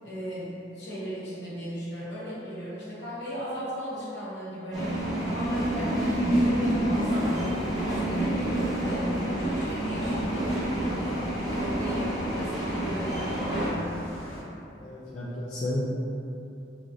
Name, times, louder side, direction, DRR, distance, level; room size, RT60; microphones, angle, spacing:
voice 1, 0.0-4.9 5.2-7.3 7.7-9.1 9.4-11.1 11.5-13.9, equal, 65° left, -9 dB, 0.9 m, -36 dB
sound 1, 4.7-13.7, right 1 dB, 20° right, 0.7 m, -28 dB
sound 2, 8.3-14.4, left 1 dB, 90° left, 0.5 m, -44 dB
voice 2, 14.8-15.8, left 1 dB, 35° left, -11 dB, 0.4 m, -32 dB
3.1 x 2.4 x 2.6 m, 2.7 s
head